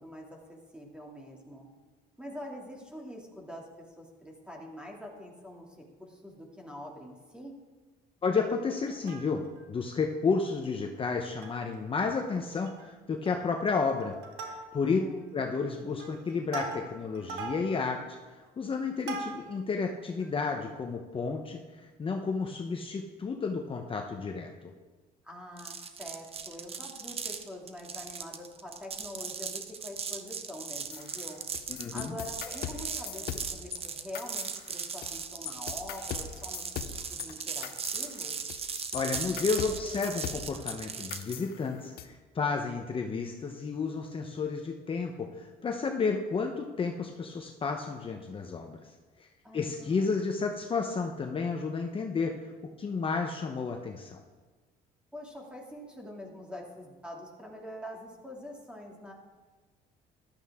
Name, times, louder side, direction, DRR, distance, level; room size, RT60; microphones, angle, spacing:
voice 1, 0.0-1.7 2.2-7.5 14.8-15.3 25.2-31.4 31.9-36.8 37.1-38.6 49.4-50.3 55.1-59.1, left 1 dB, 5° right, -1 dB, 2.6 m, -45 dB
voice 2, 8.2-9.4 9.7-14.1 14.4-15.0 15.3-18.0 18.3-24.7 31.8-32.2 38.9-48.8 49.2-49.3 49.5-52.5 52.8-54.2, left 4 dB, 30° left, 3 dB, 0.9 m, -31 dB
Plucked string instrument, 8.8-9.7 10.1-10.2 10.4-10.6 11.1-11.8 12.1-12.2 12.5-12.9 13.2-13.6 14.0-15.0 15.6-19.7 20.2-20.3, right 4 dB, 90° right, 1.9 m, -41 dB
sound 1, 25.6-41.4, right 6 dB, 35° right, 0.9 m, -38 dB
sound 2, 30.9-33.8 34.1-35.2 35.5-40.8 41.1-42.1, left 10 dB, 65° left, 0.8 m, -40 dB
14.0 x 12.0 x 3.7 m, 1.3 s
cardioid pair, 110°, 17 cm